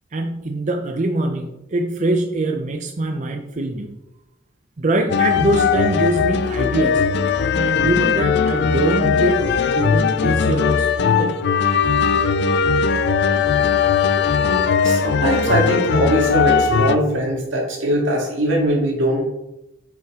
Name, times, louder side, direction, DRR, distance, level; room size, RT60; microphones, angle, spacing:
voice 1, 0.1-3.9 4.8-7.0 7.5-11.4, right 2 dB, 40° right, 4 dB, 0.6 m, -23 dB
sound 1, 5.1-17.0, left 6 dB, 60° left, 0.4 m, -19 dB
voice 2, 14.8-19.3, right 1 dB, 85° right, -1 dB, 1.9 m, -21 dB
6.1 x 5.6 x 3.7 m, 0.90 s
head